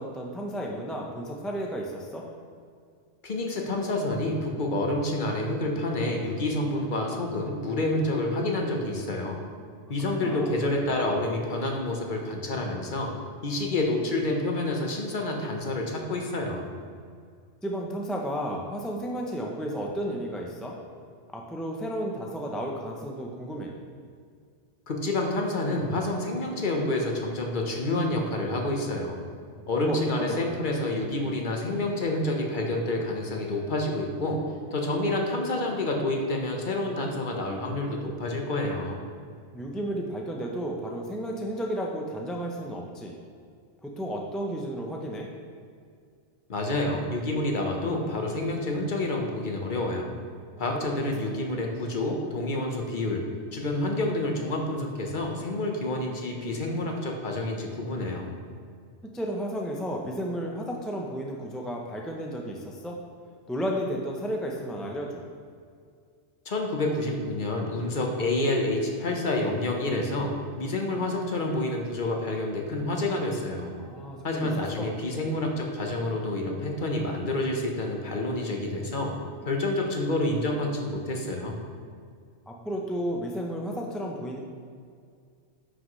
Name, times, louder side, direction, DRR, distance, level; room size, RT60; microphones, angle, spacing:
voice 1, 0.0-2.2 10.2-10.5 17.6-20.8 21.3-23.8 29.8-30.5 39.5-43.2 43.8-45.3 50.5-51.0 59.1-63.0 63.5-65.2 73.8-74.5 74.8-74.9 82.5-84.4, equal, ahead, -1 dB, 0.4 m, -33 dB
voice 2, 3.2-9.4 9.9-13.1 13.4-16.7 24.9-29.2 29.7-34.4 34.7-39.0 46.5-50.1 50.6-53.2 53.5-58.3 66.4-73.7 74.2-79.1 79.5-81.6, left 2 dB, 45° left, 1 dB, 1.1 m, -28 dB
9.6 x 6.1 x 3.1 m, 2.2 s
omnidirectional pair, 1.2 m